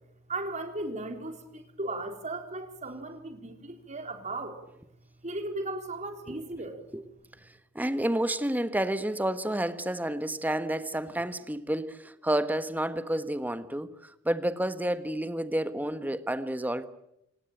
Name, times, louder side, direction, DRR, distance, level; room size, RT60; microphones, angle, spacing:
voice 1, 0.3-4.6 5.2-6.8, right 2 dB, 35° right, 3.9 m, -36 dB
voice 2, 7.7-16.8, right 1 dB, 10° right, 1.3 m, -30 dB
27.5 x 18.5 x 8.9 m
head